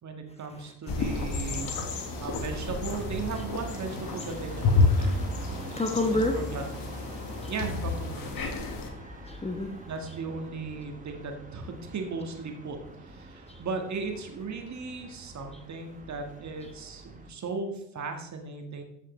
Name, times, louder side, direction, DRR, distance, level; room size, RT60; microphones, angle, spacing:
voice 1, 0.0-1.7 2.2-5.2 6.0-6.6 7.5-8.3 9.9-18.8, right 4 dB, 35° right, 4 dB, 1.7 m, -37 dB
sound 1, 0.9-8.9, left 3 dB, 45° left, 1.7 m, -30 dB
sound 2, 1.4-17.3, right 1 dB, 15° right, 1.4 m, -42 dB
voice 2, 5.4-6.4 7.1-7.5 8.6-9.8 13.5-13.6, left 2 dB, 15° left, 4 dB, 1.1 m, -31 dB
14.0 x 5.8 x 3.2 m, 0.82 s
figure-of-eight pair, 55°, 48 cm